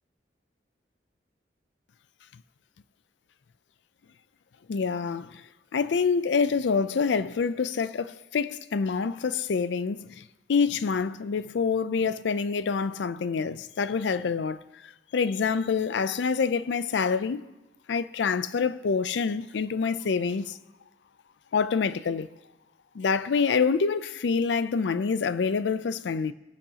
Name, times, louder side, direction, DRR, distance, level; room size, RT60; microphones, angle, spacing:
voice 1, 4.7-5.4 5.7-10.2 10.5-17.5 17.9-20.6 21.5-22.3 22.9-26.3, left 5 dB, 90° left, 0.4 m, -26 dB
20.5 x 8.6 x 2.8 m
head